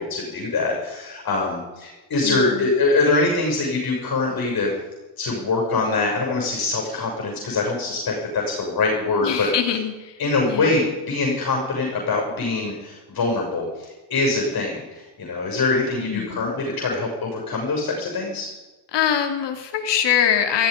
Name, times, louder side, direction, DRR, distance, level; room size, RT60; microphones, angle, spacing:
voice 1, 0.0-4.7 5.2-9.5 10.2-18.5, left 3 dB, 45° left, 0 dB, 7.4 m, -23 dB
voice 2, 2.2-2.7 9.2-10.8 16.0-16.5 18.9-20.7, left 9 dB, 60° left, 6 dB, 3.4 m, -24 dB
16.0 x 16.0 x 5.4 m, 1.1 s
supercardioid pair, 75°, 46 cm